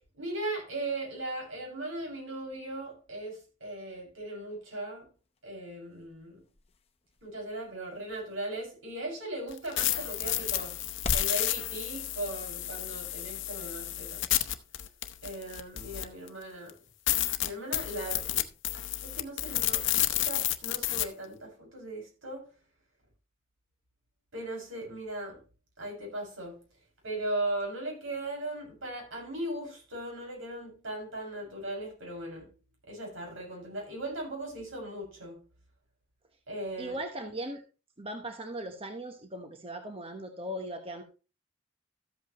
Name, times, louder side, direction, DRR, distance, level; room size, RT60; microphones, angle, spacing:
voice 1, 0.2-5.0 5.4-6.4 7.2-10.8 11.1-14.2 15.2-16.7 17.4-18.4 18.7-22.4 24.3-25.4 25.8-26.6 27.0-32.5 32.9-35.4 36.5-37.0, right 1 dB, 85° right, 6.2 m, -38 dB
sound 1, 5.1-11.4, left 2 dB, 30° left, 0.8 m, -43 dB
sound 2, 9.5-16.3 16.7-16.8 17.1-21.0, left 14 dB, 65° left, 0.8 m, -31 dB
voice 2, 36.8-37.6 38.0-41.0, right 1 dB, 30° right, 1.0 m, -38 dB
13.5 x 8.1 x 3.0 m
head